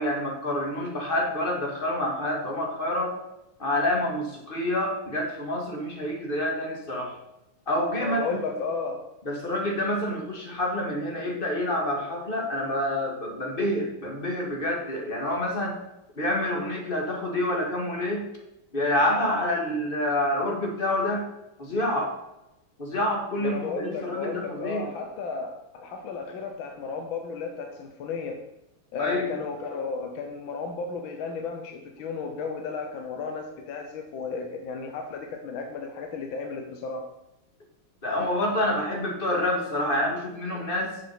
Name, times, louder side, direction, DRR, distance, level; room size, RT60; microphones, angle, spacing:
voice 1, 0.0-3.2 3.6-7.2 7.7-8.2 9.3-15.8 16.2-18.2 18.7-21.3 21.6-22.1 22.8-24.9 29.0-29.3 38.0-41.0, left 1 dB, 25° left, 0 dB, 1.8 m, -27 dB
voice 2, 8.0-9.0 23.4-28.4 28.9-37.0, left 5 dB, 75° left, 4 dB, 1.7 m, -33 dB
6.9 x 6.8 x 5.5 m, 0.91 s
omnidirectional pair, 2.2 m